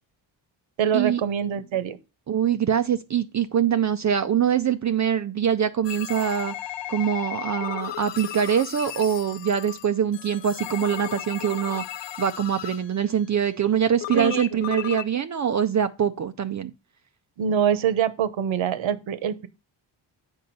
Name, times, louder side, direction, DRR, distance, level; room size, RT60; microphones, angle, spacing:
voice 1, 0.8-2.0 14.1-14.5 17.4-19.5, right 8 dB, 75° right, 1.0 m, -24 dB
voice 2, 2.3-6.5 6.9-11.8 12.2-16.7, right 8 dB, 40° right, 0.5 m, -24 dB
sound 1, 5.8-13.1 14.0-15.1, left 13 dB, 65° left, 0.6 m, -35 dB
7.9 x 5.3 x 5.3 m
cardioid pair, 105°, 47 cm